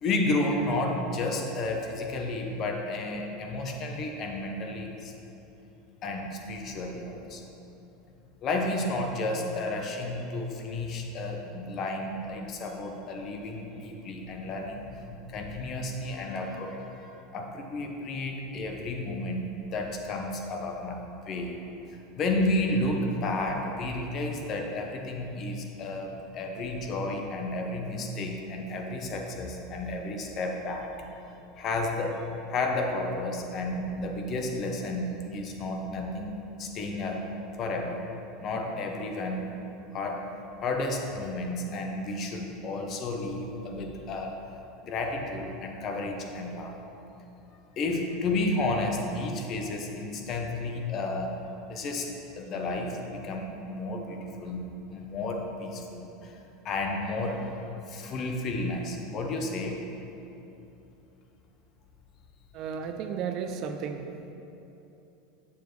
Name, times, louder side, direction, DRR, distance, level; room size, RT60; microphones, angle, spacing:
voice 1, 0.0-5.1 6.0-7.4 8.4-21.6 21.9-30.9 31.6-36.3 36.6-37.3 37.6-38.0 38.4-39.5 39.9-40.2 40.6-44.3 44.8-46.8 47.8-56.4 56.6-59.8, left 2 dB, 30° left, 2 dB, 0.7 m, -32 dB
voice 2, 62.5-64.3, right 6 dB, 40° right, 6 dB, 0.4 m, -34 dB
6.9 x 6.9 x 3.1 m, 3.0 s
supercardioid pair, 160°, 0 cm